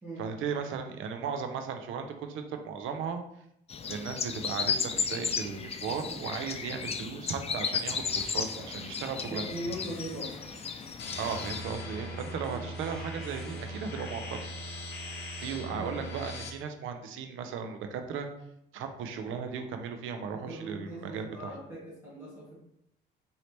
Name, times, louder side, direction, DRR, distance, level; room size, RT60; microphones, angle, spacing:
voice 1, 0.2-3.2 3.9-9.5 11.2-14.4 15.4-18.3 18.7-21.5, right 6 dB, 85° right, 7 dB, 0.5 m, -36 dB
sound 1, 3.7-11.6, left 5 dB, 30° left, 0.4 m, -34 dB
sound 2, 7.7-14.2, left 1 dB, 5° left, 0.9 m, -50 dB
voice 2, 9.3-10.6 12.5-12.7 15.7-15.9 20.3-22.6, right 1 dB, 15° right, -8 dB, 1.4 m, -40 dB
sound 3, 11.0-16.5, equal, 60° left, 0.8 m, -40 dB
4.2 x 2.8 x 3.2 m, 0.76 s
cardioid pair, 90°, 20 cm